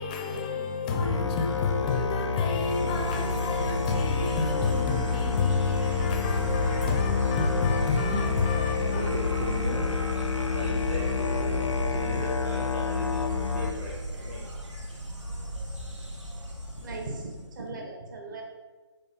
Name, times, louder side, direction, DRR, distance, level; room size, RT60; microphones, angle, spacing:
voice 1, 0.0-9.1, left 5 dB, 15° left, 0.4 m, -29 dB
Musical instrument, 1.0-13.7, left 5 dB, 90° left, 0.5 m, -30 dB
Insect, 2.5-17.6, equal, 85° right, 1.3 m, -33 dB
voice 2, 8.9-9.9 10.5-14.5 14.8-15.0, right 1 dB, 25° right, 0.7 m, -37 dB
voice 3, 16.8-18.4, right 3 dB, 40° right, 1.1 m, -38 dB
8.4 x 3.4 x 4.3 m
figure-of-eight pair, 145°, 15 cm